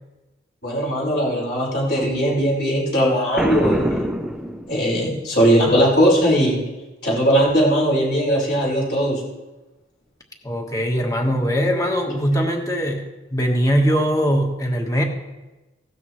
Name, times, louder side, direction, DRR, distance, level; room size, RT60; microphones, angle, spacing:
voice 1, 0.6-4.0 4.7-6.6 7.0-9.2, equal, 60° left, -5 dB, 5.2 m, -19 dB
Boom, 3.3-5.2, equal, 5° right, 0.6 m, -24 dB
voice 2, 10.4-15.0, equal, 20° left, 2 dB, 1.4 m, -21 dB
16.5 x 12.5 x 3.2 m, 1.1 s
head